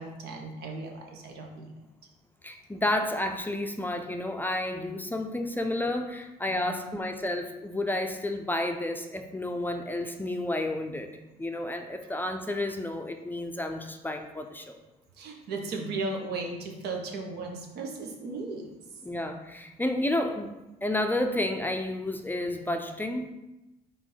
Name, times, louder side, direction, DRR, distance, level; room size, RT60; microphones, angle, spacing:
voice 1, 0.0-1.7 6.5-7.0 15.2-18.7, right 3 dB, 75° right, 1 dB, 1.4 m, -36 dB
voice 2, 2.4-11.1 11.4-14.8 19.0-20.5 20.8-23.3, left 1 dB, 10° left, 5 dB, 0.5 m, -31 dB
5.0 x 3.6 x 5.7 m, 0.98 s
cardioid pair, 110°, 17 cm